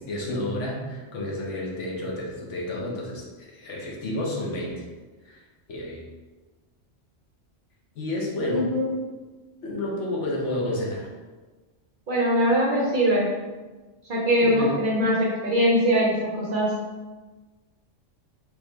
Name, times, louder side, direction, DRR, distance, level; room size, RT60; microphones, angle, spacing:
voice 1, 0.0-4.8 5.2-5.4 5.7-6.0 7.9-8.7 9.6-11.1 14.4-14.8, left 1 dB, 75° left, -2 dB, 1.2 m, -30 dB
voice 2, 8.5-8.9 12.1-13.3 14.1-16.7, equal, 50° right, -4 dB, 0.7 m, -22 dB
3.6 x 3.0 x 3.1 m, 1.3 s
omnidirectional pair, 1.3 m